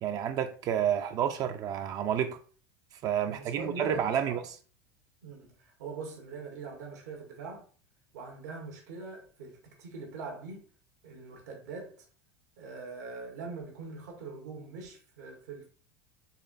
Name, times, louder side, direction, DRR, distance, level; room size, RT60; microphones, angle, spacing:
voice 1, 0.0-2.4 3.0-4.4, right 9 dB, 45° right, 0.4 m, -30 dB
voice 2, 3.3-4.4 5.2-7.7 8.1-10.6 11.0-12.0 12.6-15.7, right 4 dB, 85° right, 1.2 m, -42 dB
4.0 x 3.0 x 2.5 m
supercardioid pair, 115°, 9 cm